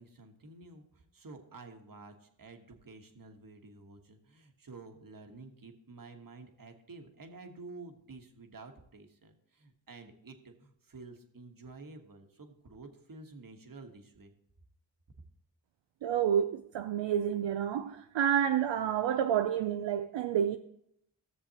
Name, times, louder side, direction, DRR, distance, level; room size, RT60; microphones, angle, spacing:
voice 1, 0.0-14.3, right 3 dB, 50° right, 1.3 m, -51 dB
voice 2, 16.0-20.6, right 9 dB, 75° right, 0.5 m, -29 dB
14.0 x 6.8 x 2.9 m
cardioid pair, 45°, 45 cm